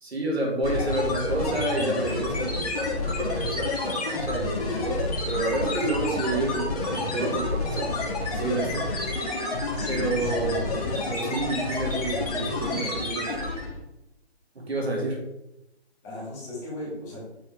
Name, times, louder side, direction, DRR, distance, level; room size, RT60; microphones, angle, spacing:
voice 1, 0.0-7.9 8.3-8.9 9.9-10.8 11.1-13.5 14.6-15.2, right 2 dB, 70° right, 0 dB, 2.1 m, -29 dB
sound 1, 0.6-13.8, left 2 dB, 35° left, 1.7 m, -29 dB
voice 2, 9.8-10.9 16.0-17.2, left 1 dB, 10° left, -8 dB, 1.6 m, -37 dB
8.2 x 3.9 x 3.4 m, 0.89 s
hypercardioid pair, 165°, 32 cm